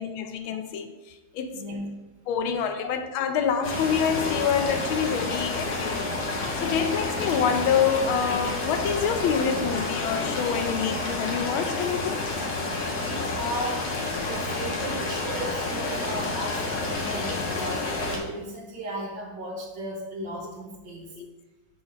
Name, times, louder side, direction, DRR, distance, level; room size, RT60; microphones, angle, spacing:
voice 1, 0.2-0.9 1.3-1.5 2.3-12.2 13.1-13.4 21.2-21.3, left 7 dB, 80° left, 1.4 m, -27 dB
voice 2, 1.5-1.9 2.6-2.9 6.8-6.9 12.7-13.1 13.4-13.9 14.2-21.1, right 1 dB, 60° right, 1.8 m, -36 dB
sound 1, 3.6-18.2, left 3 dB, 55° left, 1.5 m, -29 dB
7.1 x 5.2 x 4.0 m
omnidirectional pair, 2.3 m